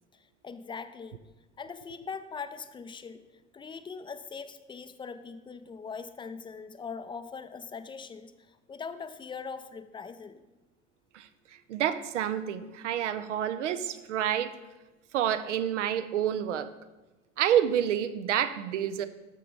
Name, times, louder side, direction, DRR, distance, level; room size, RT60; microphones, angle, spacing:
voice 1, 0.1-1.2 1.6-3.2 3.5-10.4, left 5 dB, 15° left, 10 dB, 0.4 m, -41 dB
voice 2, 11.7-14.5 15.1-16.7 17.4-19.1, right 10 dB, 75° right, 12 dB, 0.6 m, -28 dB
6.8 x 6.4 x 5.2 m, 1.1 s
figure-of-eight pair, 65°, 37 cm